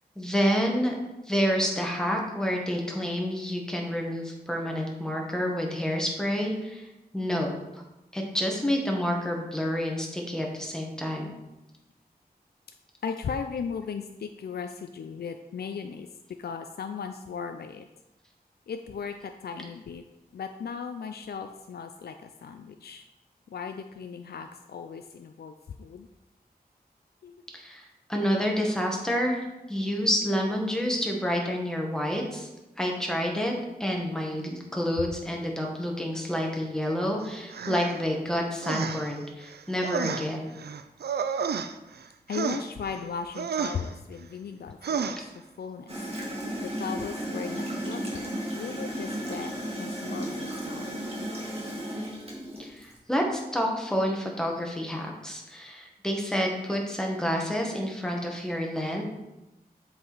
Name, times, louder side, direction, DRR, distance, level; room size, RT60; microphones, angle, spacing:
voice 1, 0.2-0.9 1.3-6.9 7.1-7.5 8.1-11.3 27.5-29.4 29.7-32.5 32.8-33.5 33.8-40.5 52.6-59.0, equal, 5° left, 0 dB, 1.4 m, -28 dB
voice 2, 13.0-16.1 16.4-17.9 18.7-20.0 20.3-23.0 23.5-26.1 27.2-27.3 42.3-45.9 46.6-49.5 49.8-51.0, left 6 dB, 75° left, 7 dB, 0.4 m, -37 dB
sound 1, 37.5-38.0 38.6-39.1 39.4-42.0 42.3-43.0 43.3-43.9 44.8-45.2, right 6 dB, 90° right, 0.4 m, -31 dB
Gurgling / Toilet flush, 45.9-53.0, equal, 40° right, 1.9 m, -34 dB
7.6 x 4.7 x 4.0 m, 0.97 s
wide cardioid pair, 95°, 16 cm